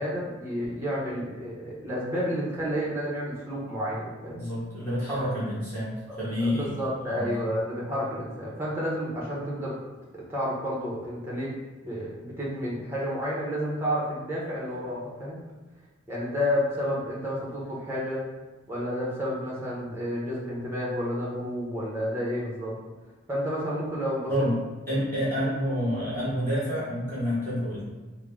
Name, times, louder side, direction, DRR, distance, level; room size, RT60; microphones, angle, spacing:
voice 1, 0.0-4.5 6.1-9.8 10.1-11.5 11.8-15.5 16.1-18.2 18.7-22.7 23.3-24.5 25.4-25.5, equal, 10° right, -6 dB, 0.8 m, -30 dB
voice 2, 4.3-7.4 24.3-24.5 24.9-27.8, equal, 10° left, -12 dB, 1.2 m, -28 dB
3.7 x 2.1 x 3.5 m, 1.2 s
head